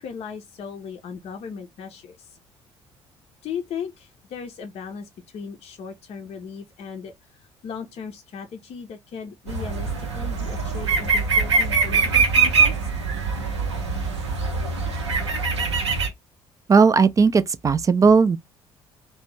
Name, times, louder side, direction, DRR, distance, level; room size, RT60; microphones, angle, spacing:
voice 1, 0.0-2.2 3.4-7.1 7.6-12.9, left 6 dB, 45° left, 0.5 m, -37 dB
sound 1, 9.5-16.1, right 4 dB, 85° right, 0.7 m, -23 dB
voice 2, 16.7-18.4, right 5 dB, 25° right, 0.3 m, -16 dB
2.5 x 2.1 x 3.1 m
figure-of-eight pair, 50°, 14 cm